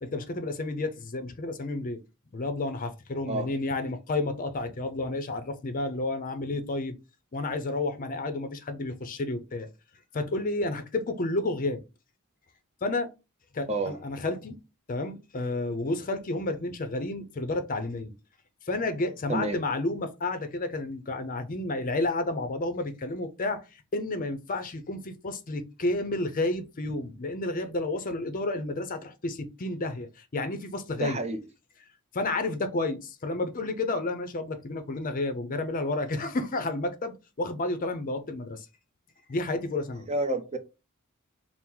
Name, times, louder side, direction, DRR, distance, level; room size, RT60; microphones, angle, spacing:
voice 1, 0.0-2.0 2.3-7.0 7.3-9.7 10.1-11.8 12.8-13.1 13.5-14.6 14.9-18.1 18.7-23.6 23.9-31.2 32.1-38.7 39.3-40.1, left 2 dB, 40° left, 0.5 m, -31 dB
voice 2, 31.0-31.4 40.1-40.6, right 2 dB, 30° right, 0.6 m, -29 dB
4.4 x 2.0 x 3.7 m
head